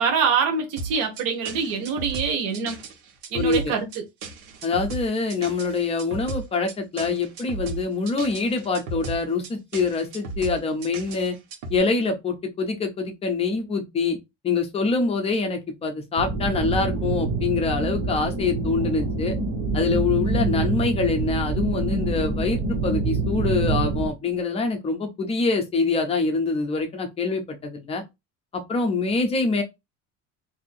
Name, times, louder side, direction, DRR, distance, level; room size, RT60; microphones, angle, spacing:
voice 1, 0.0-2.8 3.3-3.8, right 6 dB, 60° right, 1.0 m, -24 dB
sound 1, 0.8-11.8, right 3 dB, 90° right, 1.2 m, -35 dB
voice 2, 3.3-3.7 4.6-11.4 11.7-14.2 14.4-19.4 19.7-28.0 28.5-29.6, left 4 dB, 15° left, 0.4 m, -25 dB
sound 2, 16.2-24.1, right 3 dB, 30° right, 0.8 m, -26 dB
2.6 x 2.6 x 4.0 m
cardioid pair, 180°, 36 cm